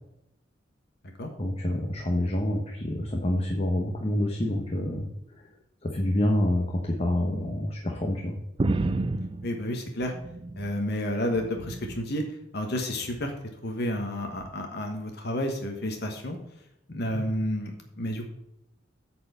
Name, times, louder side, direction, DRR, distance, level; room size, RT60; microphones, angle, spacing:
voice 1, 1.4-5.1 5.4-5.5 5.8-8.3, left 1 dB, 35° left, 1 dB, 1.1 m, -27 dB
sound 1, 8.6-10.8 11.2-12.1 13.0-13.4 14.4-14.5, right 2 dB, 30° right, 0.4 m, -31 dB
voice 2, 9.4-10.1 10.6-12.2 12.5-13.3 13.6-16.4 16.9-18.3, left 1 dB, 60° left, 4 dB, 1.2 m, -30 dB
8.5 x 4.5 x 6.9 m, 0.85 s
head